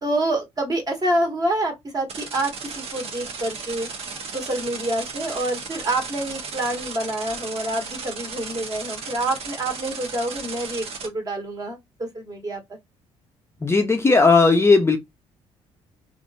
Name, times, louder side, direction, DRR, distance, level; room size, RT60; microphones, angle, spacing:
voice 1, 0.0-3.9 4.3-12.6, right 1 dB, 30° right, 1.6 m, -27 dB
sound 1, 2.1-11.1, right 5 dB, 55° right, 1.0 m, -35 dB
voice 2, 13.6-15.0, left 4 dB, 20° left, 0.6 m, -16 dB
3.2 x 2.5 x 2.5 m
cardioid pair, 80°, 12 cm